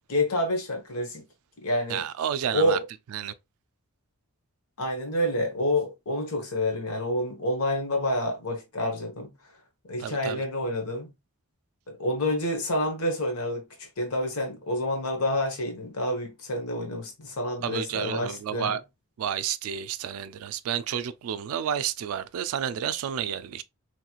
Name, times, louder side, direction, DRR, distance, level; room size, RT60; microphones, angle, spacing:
voice 1, 0.1-1.2 1.6-2.0 2.5-2.8 4.8-9.3 9.9-11.1 11.9-13.7 14.0-18.8, left 1 dB, 75° left, 1.1 m, -28 dB
voice 2, 1.9-2.8 3.1-3.3 10.0-10.4 17.6-18.8 19.2-23.6, right 9 dB, 70° right, 0.3 m, -30 dB
3.1 x 3.0 x 2.3 m
head